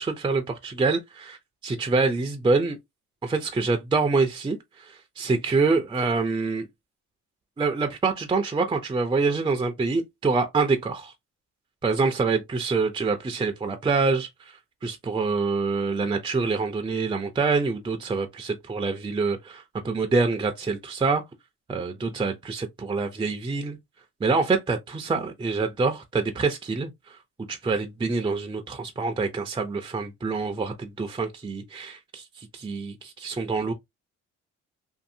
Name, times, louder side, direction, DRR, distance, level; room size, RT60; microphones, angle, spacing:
voice 1, 0.0-1.4 1.6-2.8 3.2-6.7 7.6-11.1 11.8-21.2 21.7-23.8 24.2-27.2 27.5-33.7, right 4 dB, 15° right, 0.5 m, -26 dB
2.7 x 2.6 x 2.6 m
cardioid pair, 90°, 30 cm